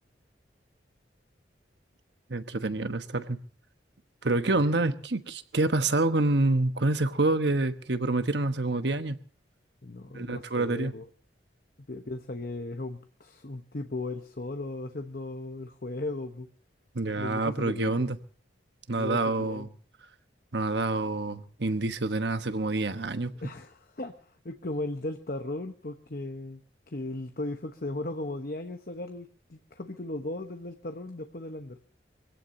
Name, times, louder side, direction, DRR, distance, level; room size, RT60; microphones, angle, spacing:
voice 1, 2.3-3.4 4.2-9.2 10.1-10.9 16.9-18.2 18.9-19.7 20.5-23.3, right 2 dB, 70° right, 1.2 m, -27 dB
voice 2, 9.8-11.1 11.9-16.5 17.2-18.1 19.0-19.7 23.4-26.6 26.9-31.8, left 2 dB, 50° left, 1.0 m, -37 dB
25.0 x 17.0 x 2.7 m
head